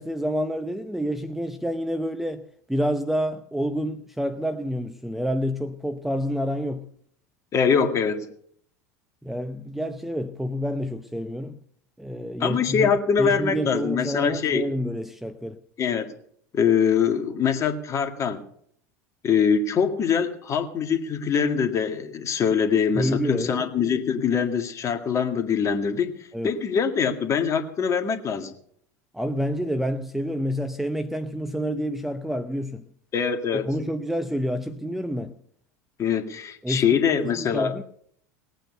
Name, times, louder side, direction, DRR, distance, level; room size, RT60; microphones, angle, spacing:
voice 1, 0.0-6.8 9.2-11.6 12.0-12.9 13.2-15.6 22.9-23.6 26.3-26.6 29.1-32.8 33.5-35.4 36.6-37.0 37.4-37.8, equal, 5° right, 0.8 m, -28 dB
voice 2, 7.5-8.3 12.4-14.7 15.8-16.1 16.5-18.4 19.2-28.5 33.1-33.7 36.0-37.7, left 7 dB, 35° left, 2.0 m, -23 dB
19.0 x 9.0 x 6.8 m
figure-of-eight pair, 80°, 9 cm